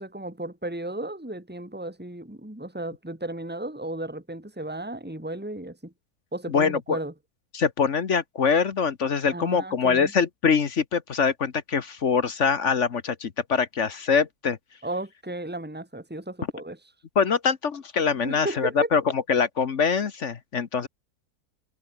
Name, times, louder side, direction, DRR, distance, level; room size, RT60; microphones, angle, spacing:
voice 1, 0.0-5.9 6.3-7.1 9.3-10.1 14.8-16.8 18.2-18.9, right 1 dB, 5° right, 3.4 m, -34 dB
voice 2, 6.5-7.0 7.5-14.6 17.1-20.9, left 6 dB, 55° left, 1.4 m, -24 dB
omnidirectional pair, 1.6 m